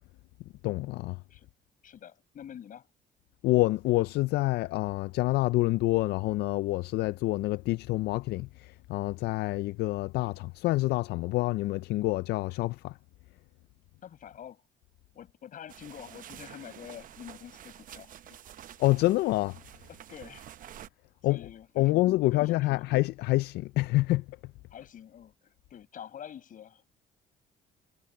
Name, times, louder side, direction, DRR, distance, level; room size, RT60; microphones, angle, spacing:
voice 1, 0.6-1.2 3.4-13.0 18.8-19.6 21.2-21.4 21.8-24.2, left 18 dB, 75° left, 0.4 m, -27 dB
voice 2, 1.8-2.9 14.0-14.6 15.1-18.4 19.9-20.5 21.2-22.8 24.7-26.8, left 9 dB, 55° left, 7.2 m, -47 dB
sound 1, 15.7-20.9, right 10 dB, 55° right, 0.8 m, -49 dB
cardioid pair, 110°, 17 cm